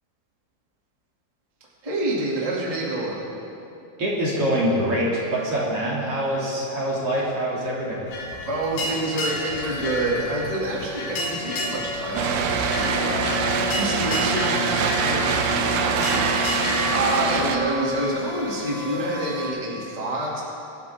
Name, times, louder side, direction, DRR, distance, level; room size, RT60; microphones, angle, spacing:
voice 1, 1.8-3.3 8.4-20.4, right 2 dB, 10° right, -5 dB, 1.9 m, -28 dB
voice 2, 4.0-8.0, equal, 45° right, -5 dB, 3.3 m, -24 dB
sound 1, 8.1-17.0, left 2 dB, 85° left, 3.6 m, -31 dB
sound 2, 9.0-19.5, equal, 35° left, 5.1 m, -36 dB
sound 3, 12.1-17.6, right 4 dB, 90° right, 2.7 m, -24 dB
25.0 x 13.0 x 3.6 m, 3.0 s
omnidirectional pair, 3.9 m